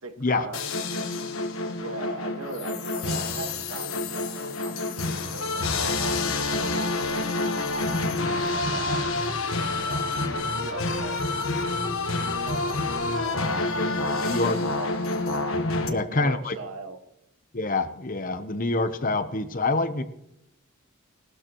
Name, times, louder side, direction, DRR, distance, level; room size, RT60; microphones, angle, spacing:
voice 1, 0.0-1.2 1.8-7.9 8.5-9.3 9.7-15.0 15.8-17.0, right 3 dB, 80° right, 6 dB, 1.6 m, -40 dB
sound 1, 0.5-15.9, left 2 dB, 75° left, 1.3 m, -28 dB
voice 2, 14.2-14.6 15.9-16.6 17.5-20.0, left 3 dB, 40° left, 10 dB, 0.8 m, -26 dB
19.5 x 13.0 x 3.0 m, 0.84 s
head